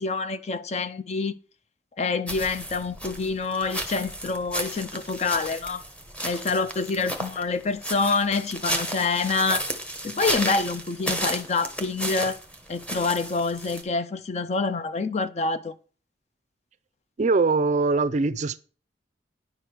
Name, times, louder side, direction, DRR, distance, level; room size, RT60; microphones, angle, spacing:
voice 1, 0.0-1.4 2.0-5.8 6.2-9.6 10.0-12.4 12.7-15.8, left 4 dB, 35° left, 0.4 m, -27 dB
sound 1, 2.3-13.8, right 1 dB, 5° left, 1.1 m, -33 dB
voice 2, 17.2-18.6, right 3 dB, 40° right, 0.4 m, -22 dB
10.0 x 4.9 x 6.0 m
head